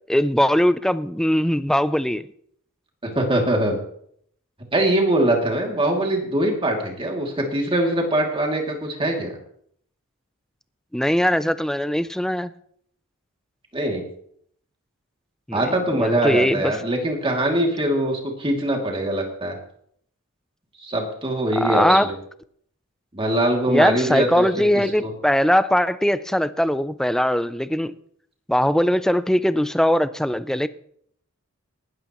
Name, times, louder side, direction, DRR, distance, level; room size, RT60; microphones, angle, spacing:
voice 1, 0.1-2.3 10.9-12.5 15.5-16.6 21.6-22.1 23.7-27.9 28.5-30.7, equal, ahead, 14 dB, 0.4 m, -20 dB
voice 2, 3.0-3.8 4.7-9.3 13.7-14.0 15.5-19.6 20.8-22.1 23.1-24.7 25.0-25.1, right 1 dB, 25° right, 1 dB, 2.6 m, -22 dB
19.0 x 13.0 x 3.1 m, 0.67 s
head